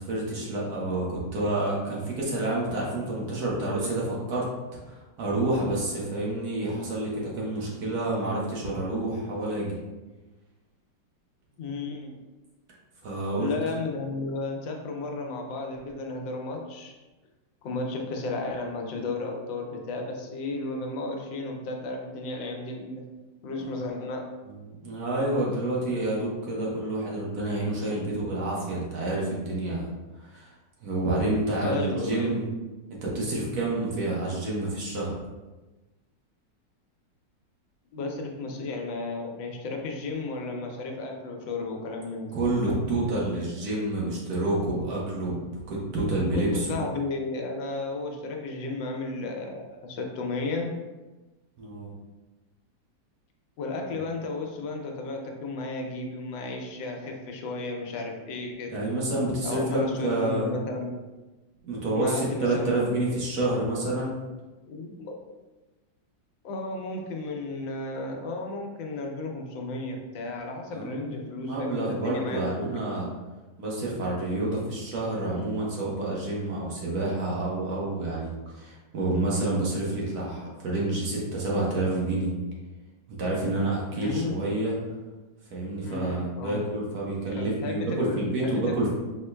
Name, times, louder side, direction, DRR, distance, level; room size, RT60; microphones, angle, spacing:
voice 1, 0.0-4.5 4.9-9.8 13.0-13.5 23.6-23.7 24.4-29.9 30.2-30.5 30.8-32.4 33.0-35.2 42.3-46.8 51.6-51.9 58.7-60.5 61.6-64.2 70.7-73.1 73.6-82.3 83.1-84.7 85.5-88.9, right 2 dB, 60° right, -4 dB, 1.4 m, -28 dB
voice 2, 11.6-12.1 13.4-16.9 17.6-23.0 23.4-24.3 31.6-32.4 37.9-42.4 46.3-50.8 53.6-58.8 59.4-60.9 61.9-63.0 64.7-65.2 66.4-72.8 83.9-84.4 85.8-86.6 87.4-88.7, left 2 dB, 90° left, 2 dB, 1.4 m, -33 dB
5.3 x 3.7 x 2.2 m, 1.2 s
omnidirectional pair, 2.0 m